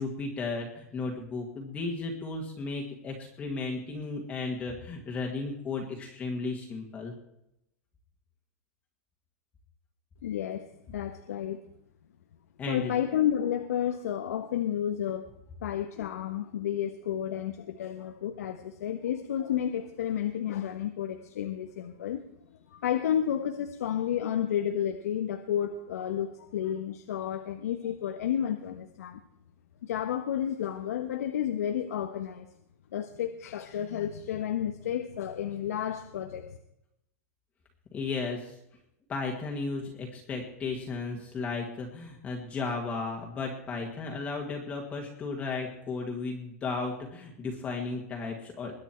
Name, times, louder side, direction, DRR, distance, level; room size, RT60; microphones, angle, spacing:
voice 1, 0.0-7.1 12.6-12.9 37.9-38.6 39.1-48.7, left 3 dB, 15° left, 0 dB, 1.9 m, -34 dB
voice 2, 10.2-11.6 12.7-15.3 15.6-22.2 22.7-29.2 29.8-32.5 32.9-36.6, left 10 dB, 90° left, 6 dB, 1.3 m, -31 dB
21.5 x 8.9 x 4.5 m, 0.80 s
supercardioid pair, 165°, 8 cm